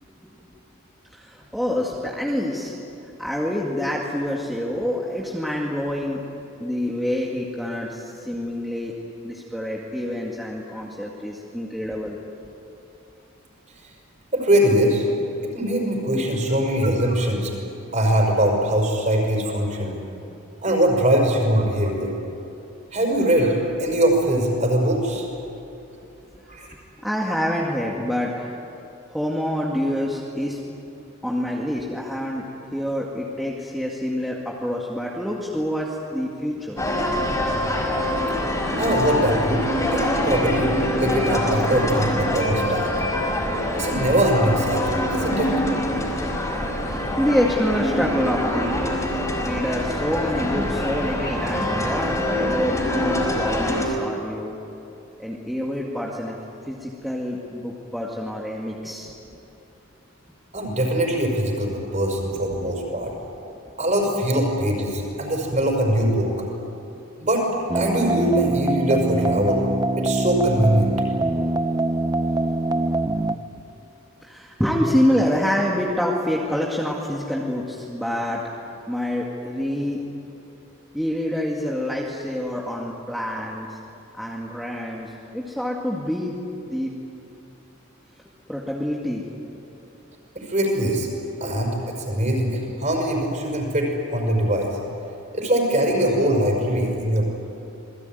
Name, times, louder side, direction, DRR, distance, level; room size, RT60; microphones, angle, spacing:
voice 1, 1.1-2.7 3.2-6.2 6.6-8.9 9.2-12.2 20.3-20.4 27.0-28.5 29.1-30.6 31.2-36.8 46.8-54.6 55.2-56.4 56.7-59.1 62.4-62.7 72.3-72.4 73.1-73.3 73.5-73.6 74.2-78.5 78.9-80.0 80.9-83.7 84.2-86.4 86.7-86.9 88.5-89.2, equal, ahead, -3 dB, 2.1 m, -27 dB
voice 2, 14.3-15.1 15.5-17.5 17.9-19.9 20.6-22.1 22.9-25.3 26.5-26.7 38.8-39.7 39.9-40.7 41.0-42.9 43.7-45.5 60.5-63.1 63.8-66.3 67.2-69.6 70.0-70.9 90.3-91.1 91.4-94.7 95.3-97.3, right 1 dB, 35° right, 1 dB, 5.9 m, -22 dB
sound 1, 36.8-53.9, left 1 dB, 15° left, 4.8 m, -24 dB
sound 2, 67.7-73.4, right 2 dB, 20° right, 0.6 m, -23 dB
28.0 x 21.0 x 9.3 m, 2.8 s
head